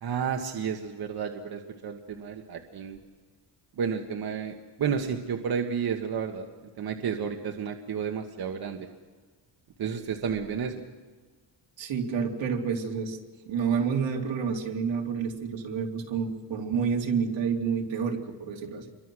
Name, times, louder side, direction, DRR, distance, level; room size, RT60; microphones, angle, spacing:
voice 1, 0.0-3.0 3.8-6.5 6.8-8.9 9.8-10.8, right 7 dB, 55° right, 4 dB, 1.6 m, -31 dB
voice 2, 11.8-13.2 13.5-18.9, right 6 dB, 80° right, 2 dB, 3.3 m, -29 dB
28.5 x 23.5 x 6.3 m, 1.4 s
wide cardioid pair, 155°, 44 cm